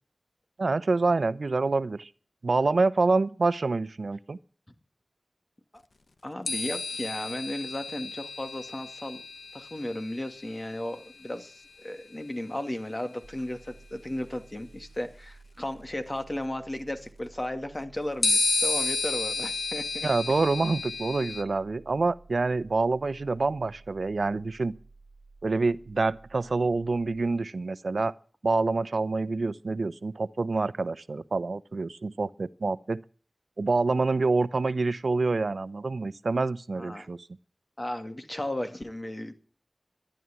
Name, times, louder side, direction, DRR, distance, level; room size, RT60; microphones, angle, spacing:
voice 1, 0.6-2.1 2.4-4.4 20.0-24.7 25.4-28.1 28.4-33.0 33.6-37.3, right 3 dB, 80° right, 0.7 m, -27 dB
voice 2, 6.2-9.2 9.5-20.1 36.8-37.1 37.8-39.3, left 1 dB, 30° left, 2.4 m, -35 dB
sound 1, 6.5-12.1 13.4-13.5 18.2-21.4, left 3 dB, 80° left, 1.2 m, -32 dB
sound 2, 13.2-27.3, right 3 dB, 30° right, 3.4 m, -53 dB
14.0 x 11.0 x 8.9 m
wide cardioid pair, 55°, 0 cm